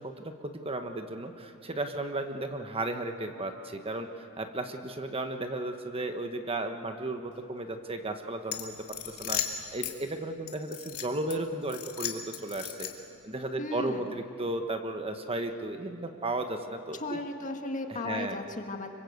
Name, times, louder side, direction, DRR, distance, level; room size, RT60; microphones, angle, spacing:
voice 1, 0.0-9.4 9.7-12.9 13.2-17.2 18.0-18.4, right 2 dB, 25° right, 6 dB, 1.2 m, -34 dB
sound 1, 8.5-9.9 10.5-11.3 11.7-13.1, left 10 dB, 85° left, 2.3 m, -36 dB
voice 2, 13.6-14.1 17.0-18.9, left 2 dB, 35° left, 4 dB, 1.8 m, -35 dB
26.0 x 24.0 x 8.1 m, 2.6 s
head